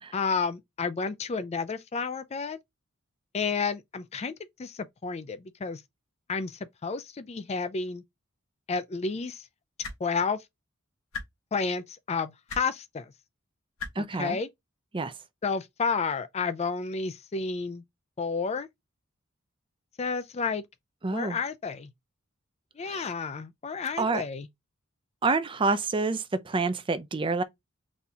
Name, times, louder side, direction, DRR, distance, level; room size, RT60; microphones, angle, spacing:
voice 1, 0.1-2.6 3.3-4.3 4.6-5.8 6.3-8.0 8.7-9.4 10.0-10.4 11.5-13.1 14.0-14.5 15.4-17.8 18.2-18.7 20.0-20.6 21.1-21.9 22.8-24.5, left 5 dB, 30° left, 0.4 m, -31 dB
sound 1, 9.8-10.0 11.1-11.2 12.5-12.6 13.8-13.9 15.1-15.2, left 4 dB, 90° left, 1.5 m, -36 dB
voice 2, 14.0-14.4 14.9-15.1 21.0-21.4 22.8-23.1 24.0-24.2 25.2-27.4, right 3 dB, 25° right, 0.5 m, -28 dB
4.2 x 2.8 x 3.5 m
head